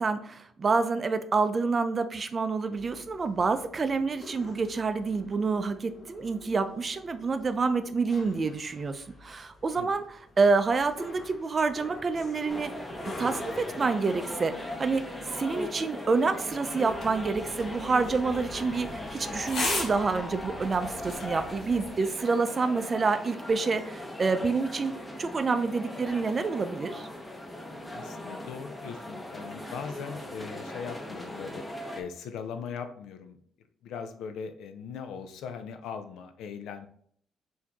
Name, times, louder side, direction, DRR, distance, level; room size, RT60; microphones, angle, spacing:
voice 1, 0.0-12.7 13.2-24.9 25.2-27.1, right 4 dB, 35° right, 9 dB, 0.4 m, -28 dB
sound 1, 2.7-22.3, left 1 dB, 40° left, 0.9 m, -49 dB
sound 2, 12.5-32.0, left 1 dB, 15° left, 0.8 m, -39 dB
Empty Svedka Bottle, 16.9-21.9, left 2 dB, 55° left, 1.4 m, -37 dB
voice 2, 27.9-31.6 31.9-33.4 33.8-36.9, left 6 dB, 85° left, 8 dB, 0.5 m, -40 dB
4.6 x 2.7 x 3.5 m, 0.63 s
cardioid pair, 95°, 0 cm